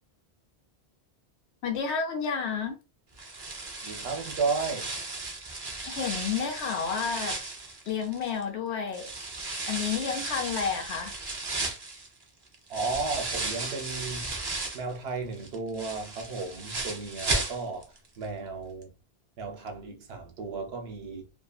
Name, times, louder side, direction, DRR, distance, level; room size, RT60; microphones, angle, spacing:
voice 1, 1.6-2.7 5.8-7.4 7.9-9.1 9.7-11.1, left 6 dB, 85° left, 0.9 m, -30 dB
sound 1, 3.2-8.4 8.9-14.9 15.3-18.0 18.2-18.3 18.8-18.9, right 2 dB, 35° right, 0.4 m, -35 dB
voice 2, 3.8-4.9 12.7-14.3 14.7-18.9 19.4-21.2, right 4 dB, 70° right, 0.9 m, -34 dB
2.6 x 2.4 x 2.3 m
omnidirectional pair, 1.1 m